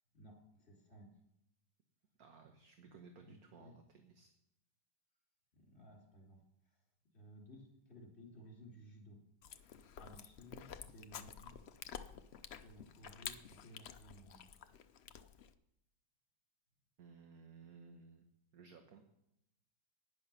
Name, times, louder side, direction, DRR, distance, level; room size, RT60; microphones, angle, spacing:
voice 1, 0.1-1.1 3.2-3.8 5.5-6.8 7.1-9.2 10.0-11.5 12.6-14.4, equal, 35° left, -2 dB, 3.6 m, -58 dB
voice 2, 2.2-4.3 17.0-18.3 18.5-19.1, right 5 dB, 60° right, 5 dB, 1.5 m, -58 dB
Chewing mastication, 9.4-15.5, left 8 dB, 80° left, 0.5 m, -51 dB
11.0 x 9.9 x 5.6 m, 0.81 s
omnidirectional pair, 2.0 m